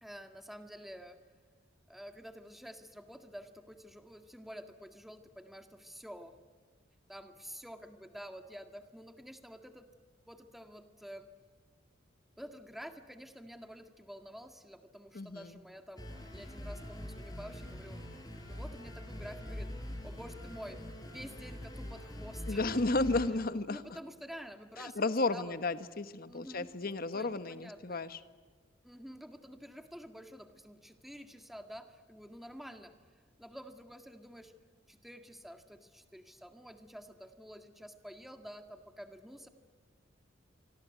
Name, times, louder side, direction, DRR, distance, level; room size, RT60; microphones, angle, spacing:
voice 1, 0.0-1.2 1.9-6.3 7.1-9.9 10.3-11.3 12.4-19.7 20.0-20.8 21.1-22.8 23.7-25.5 26.3-26.7 27.1-28.1 28.8-32.9 33.4-34.5 34.9-39.5, equal, ahead, 7 dB, 1.9 m, -49 dB
voice 2, 15.1-15.5 22.5-23.8 24.8-28.2, left 2 dB, 50° left, 12 dB, 1.3 m, -33 dB
sound 1, 16.0-23.3, left 1 dB, 20° left, 5.5 m, -44 dB
25.5 x 25.5 x 9.3 m, 1.5 s
head